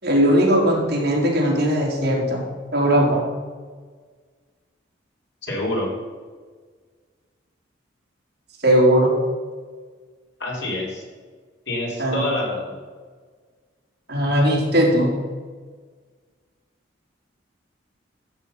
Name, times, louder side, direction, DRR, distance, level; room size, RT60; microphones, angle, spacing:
voice 1, 0.0-2.4 2.7-3.2 8.6-9.1 12.0-12.2 14.1-15.1, equal, 55° right, -3 dB, 3.6 m, -18 dB
voice 2, 5.4-5.9 10.4-11.0 11.7-12.8, left 1 dB, 65° left, -3 dB, 3.9 m, -26 dB
13.0 x 8.2 x 5.5 m, 1.5 s
head